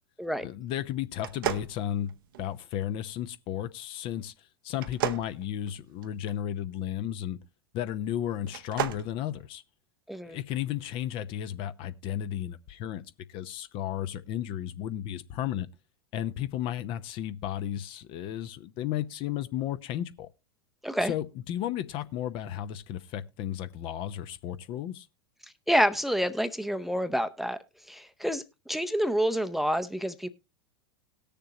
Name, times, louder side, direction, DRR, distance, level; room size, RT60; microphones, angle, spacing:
voice 1, 0.4-2.1 2.4-7.4 7.7-9.6 10.3-13.0 13.3-15.7 16.1-20.3 21.0-25.1, left 11 dB, 45° left, 0.7 m, -34 dB
sound 1, 1.2-2.6 4.7-6.3 8.4-9.1, right 12 dB, 65° right, 0.8 m, -33 dB
voice 2, 10.1-10.4 20.8-21.1 25.7-27.6 27.9-30.3, equal, ahead, 0.7 m, -28 dB
18.5 x 6.8 x 2.9 m
figure-of-eight pair, 85°, 12 cm